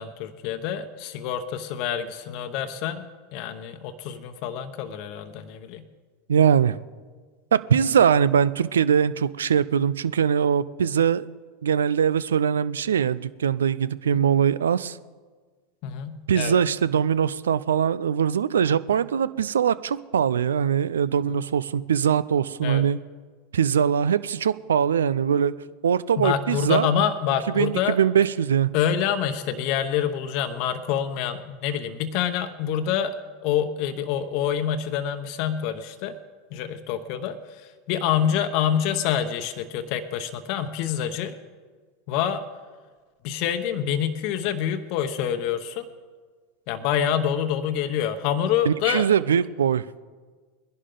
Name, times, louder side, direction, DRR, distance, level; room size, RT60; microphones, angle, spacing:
voice 1, 0.0-5.8 15.8-16.5 22.6-22.8 26.2-28.0 28.7-33.2 33.4-36.2 36.5-41.3 42.1-42.4 43.2-45.9 46.7-49.0, left 9 dB, 55° left, 8 dB, 0.9 m, -26 dB
voice 2, 6.3-6.8 7.5-11.3 11.6-15.0 16.3-23.0 23.5-25.5 25.8-26.9 27.5-28.7 48.7-49.8, right 8 dB, 80° right, 17 dB, 0.4 m, -22 dB
21.0 x 11.0 x 3.9 m, 1.5 s
hypercardioid pair, 85°, 0 cm